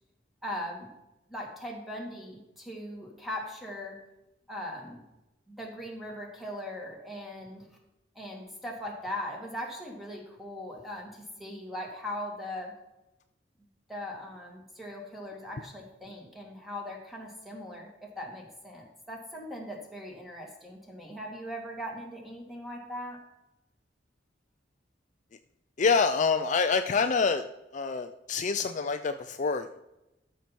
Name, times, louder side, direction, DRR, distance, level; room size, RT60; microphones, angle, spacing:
voice 1, 0.4-0.9 1.3-4.0 4.5-5.0 5.5-7.7 8.1-12.7 13.9-23.2, left 1 dB, ahead, -1 dB, 2.4 m, -40 dB
voice 2, 25.8-27.4 27.7-29.8, left 5 dB, 40° left, 8 dB, 0.5 m, -26 dB
13.5 x 5.9 x 4.5 m, 0.94 s
head